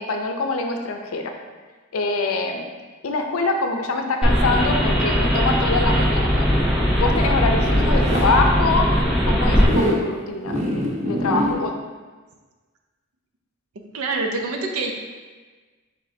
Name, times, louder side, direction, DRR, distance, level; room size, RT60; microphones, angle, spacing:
voice 1, 0.0-1.3 1.9-2.7 3.0-6.5 7.0-8.9 9.2-10.7 11.0-11.7, left 3 dB, 80° left, 4 dB, 0.5 m, -24 dB
sound 1, 4.2-9.7, equal, ahead, 0.8 m, -19 dB
Zipper (clothing), 6.7-8.3 9.6-10.0 10.4-11.5, equal, 35° right, 0.7 m, -25 dB
voice 2, 13.9-14.9, right 3 dB, 90° right, 3 dB, 0.6 m, -25 dB
4.9 x 3.7 x 2.7 m, 1.4 s
head